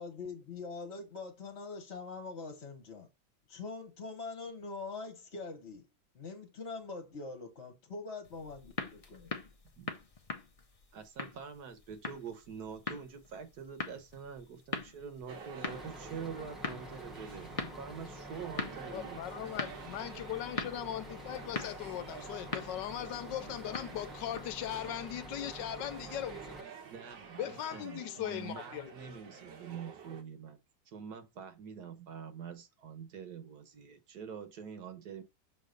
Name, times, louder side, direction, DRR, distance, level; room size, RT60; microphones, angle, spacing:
voice 1, 0.0-3.1 3.5-5.9 6.1-9.3, left 4 dB, 40° left, 1.3 m, -43 dB
sound 1, 8.2-24.7, left 4 dB, 65° left, 0.3 m, -43 dB
voice 2, 10.9-19.3 26.9-30.6 30.9-35.2, right 6 dB, 65° right, 1.5 m, -45 dB
sound 2, 15.3-30.2, right 6 dB, 85° right, 1.8 m, -49 dB
Bus, 15.7-26.6, left 1 dB, ahead, 0.5 m, -49 dB
voice 3, 18.9-26.7 27.4-29.1, left 11 dB, 85° left, 1.3 m, -39 dB
6.6 x 3.0 x 5.1 m
omnidirectional pair, 1.9 m